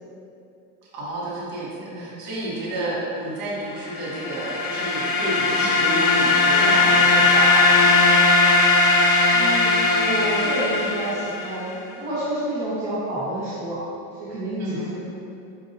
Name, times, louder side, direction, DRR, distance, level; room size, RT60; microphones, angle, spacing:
voice 1, 0.9-8.0 14.6-14.9, right 1 dB, 65° right, -7 dB, 1.2 m, -30 dB
voice 2, 1.8-2.1 5.4-5.7 9.3-13.8 14.1-15.0, right 1 dB, 45° right, -11 dB, 1.0 m, -29 dB
sound 1, 3.9-11.7, left 3 dB, 80° left, 0.6 m, -19 dB
5.3 x 2.6 x 2.6 m, 2.7 s
supercardioid pair, 145°, 41 cm